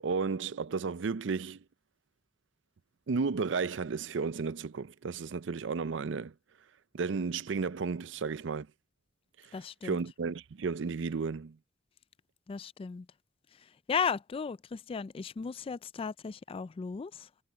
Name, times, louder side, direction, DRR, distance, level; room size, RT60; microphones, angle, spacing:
voice 1, 0.0-1.6 3.1-6.3 6.9-8.7 9.8-11.6, right 5 dB, 70° right, 0.5 m, -33 dB
voice 2, 9.5-10.0 12.5-13.1 13.9-17.3, left 6 dB, 30° left, 0.3 m, -35 dB
head